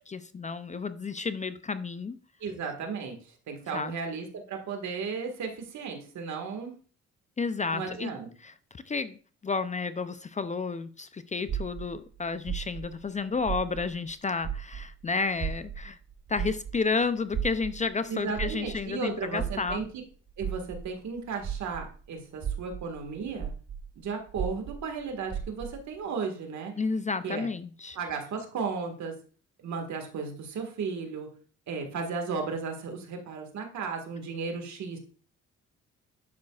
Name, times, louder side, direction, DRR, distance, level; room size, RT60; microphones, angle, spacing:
voice 1, 0.1-2.2 3.7-4.0 7.4-8.1 8.4-8.5 8.9-9.2 9.4-16.0 16.3-19.8 26.8-28.0, left 4 dB, 25° left, 0.5 m, -31 dB
voice 2, 2.4-3.2 3.5-6.8 7.7-8.3 18.1-20.0 20.4-23.5 23.9-26.7 27.2-27.5 27.9-29.2 29.6-31.3 31.7-35.0, right 5 dB, 65° right, 1.8 m, -35 dB
sound 1, 11.5-14.1 14.4-22.0 22.3-25.9, right 8 dB, 50° right, 1.0 m, -36 dB
10.5 x 7.2 x 2.4 m
cardioid pair, 90°, 30 cm